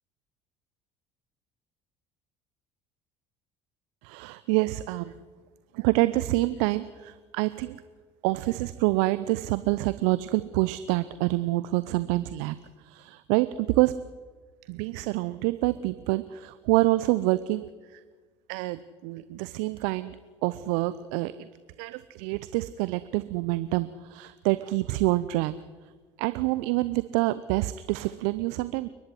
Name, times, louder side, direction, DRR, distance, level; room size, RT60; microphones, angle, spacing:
voice 1, 4.0-5.2 5.7-7.8 8.2-14.0 14.7-18.0 18.5-21.5 21.8-25.5 26.2-28.9, right 19 dB, 65° right, 14 dB, 0.8 m, -27 dB
29.5 x 11.0 x 9.9 m, 1.4 s
figure-of-eight pair, 60°, 14 cm